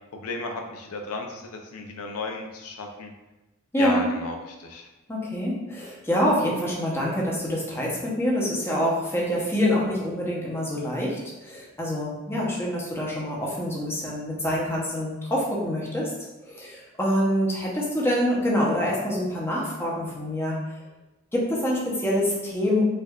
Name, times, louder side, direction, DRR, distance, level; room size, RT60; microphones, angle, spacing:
voice 1, 0.1-3.1 3.8-4.9, left 3 dB, 80° left, 3 dB, 0.4 m, -34 dB
voice 2, 3.7-4.1 5.1-16.1 16.5-20.6 21.3-22.8, equal, 10° left, -5 dB, 0.7 m, -26 dB
4.4 x 2.4 x 2.3 m, 1.1 s
head